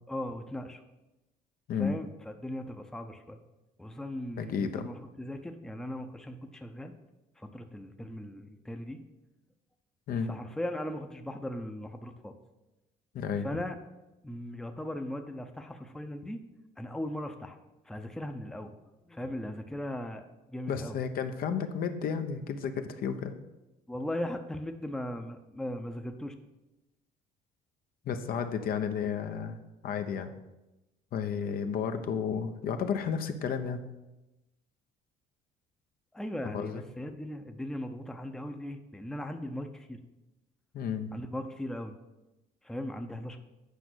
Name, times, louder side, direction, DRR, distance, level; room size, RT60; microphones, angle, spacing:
voice 1, 0.1-0.8 1.8-3.4 3.8-6.9 7.4-9.0 10.3-12.4 13.4-13.7 14.2-16.4 16.8-17.6 17.9-18.8 19.0-21.0 23.9-26.3 36.1-40.0 41.1-41.9 42.6-43.4, left 1 dB, 5° left, 5 dB, 0.7 m, -38 dB
voice 2, 4.4-4.9 10.1-10.3 13.1-13.5 20.7-23.3 28.0-30.3 31.1-33.8 36.4-36.8 40.7-41.1, left 6 dB, 60° left, 7 dB, 0.8 m, -32 dB
8.3 x 5.3 x 6.2 m, 1.0 s
cardioid pair, 110°, 17 cm